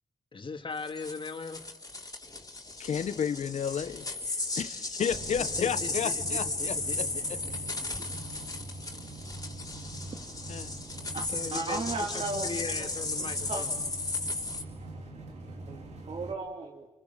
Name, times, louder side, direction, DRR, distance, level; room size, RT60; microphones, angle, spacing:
voice 1, 0.3-1.6 5.4-7.2 11.3-13.7, left 4 dB, 50° left, 2.9 m, -39 dB
sound 1, 0.8-14.6, left 2 dB, 30° left, 3.6 m, -35 dB
voice 2, 2.8-7.4 10.5-10.8, left 7 dB, 80° left, 1.1 m, -33 dB
sound 2, 5.1-16.3, right 2 dB, 85° right, 3.5 m, -43 dB
voice 3, 11.5-12.5 12.8-12.9 13.2-13.6 15.7-16.9, right 3 dB, 65° right, 2.4 m, -35 dB
28.5 x 26.5 x 7.4 m
cardioid pair, 60°, 11 cm